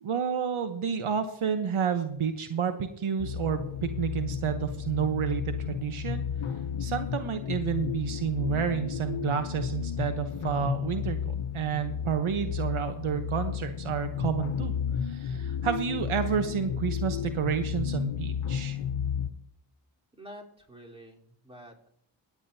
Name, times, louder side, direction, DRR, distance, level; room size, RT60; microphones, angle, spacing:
voice 1, 0.0-6.3 6.8-14.7 15.0-18.8, right 7 dB, 75° right, 8 dB, 1.0 m, -30 dB
sound 1, 3.2-19.3, left 8 dB, 75° left, 0.9 m, -33 dB
voice 2, 20.2-21.9, equal, 10° right, -2 dB, 3.6 m, -48 dB
17.5 x 9.5 x 2.7 m, 0.71 s
cardioid pair, 45°, 50 cm